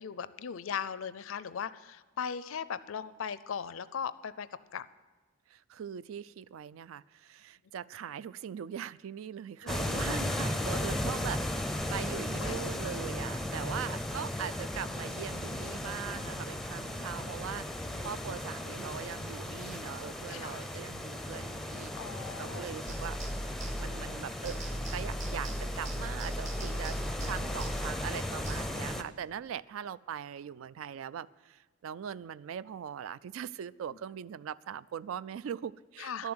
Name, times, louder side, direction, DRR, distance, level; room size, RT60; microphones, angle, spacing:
voice 1, 0.0-4.9 9.6-10.3 12.4-12.6 17.8-18.4 20.3-20.6 22.0-22.7 27.2-27.4 36.0-36.3, left 7 dB, 70° left, 16 dB, 0.5 m, -39 dB
voice 2, 5.5-11.5 11.9-21.9 22.4-23.2 23.8-24.6 24.9-36.3, right 8 dB, 75° right, 18 dB, 0.3 m, -41 dB
sound 1, 9.7-29.0, left 1 dB, ahead, 0.5 m, -36 dB
sound 2, 22.9-24.2 24.4-28.6, equal, 35° right, 1.3 m, -37 dB
12.5 x 7.1 x 9.6 m, 1.3 s
head